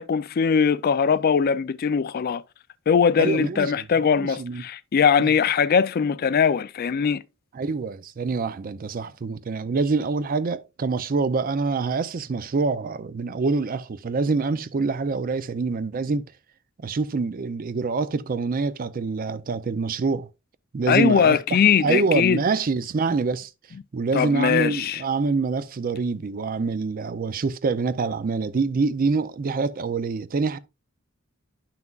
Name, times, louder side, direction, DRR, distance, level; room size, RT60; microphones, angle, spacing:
voice 1, 0.0-2.4 2.9-7.2 20.9-22.4 24.1-25.0, left 6 dB, 45° left, 0.4 m, -21 dB
voice 2, 3.2-3.8 4.2-4.6 5.2-5.3 7.5-16.2 16.8-20.3 20.7-21.4 21.8-23.5 23.9-30.6, right 4 dB, 40° right, 0.4 m, -25 dB
10.5 x 5.9 x 2.4 m
head